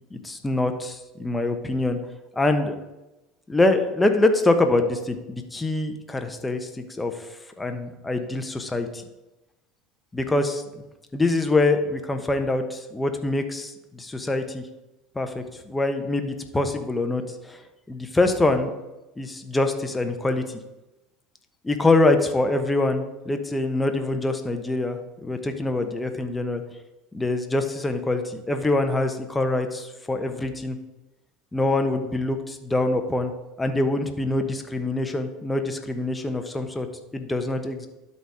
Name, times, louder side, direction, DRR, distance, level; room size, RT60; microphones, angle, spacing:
voice 1, 0.1-2.0 2.3-2.8 3.5-6.7 7.0-7.1 7.6-9.0 10.1-10.8 11.1-14.6 15.1-17.6 17.9-18.7 19.2-20.6 21.6-26.6 27.1-30.8 31.5-33.3 33.6-36.9 37.1-37.9, left 2 dB, 15° left, 6 dB, 1.2 m, -24 dB
12.0 x 4.3 x 4.9 m, 1.0 s
hypercardioid pair, 70°, 0 cm